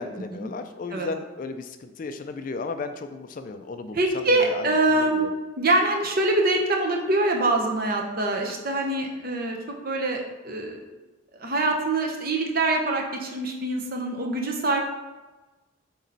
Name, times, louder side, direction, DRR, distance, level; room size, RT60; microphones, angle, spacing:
voice 1, 0.0-4.0 4.3-4.7 4.9-5.3, left 3 dB, 40° left, 8 dB, 0.3 m, -35 dB
voice 2, 3.9-5.3 5.6-9.6 9.8-10.8 11.4-14.8, right 2 dB, 45° right, 1 dB, 0.9 m, -24 dB
8.3 x 3.0 x 4.0 m, 1.2 s
head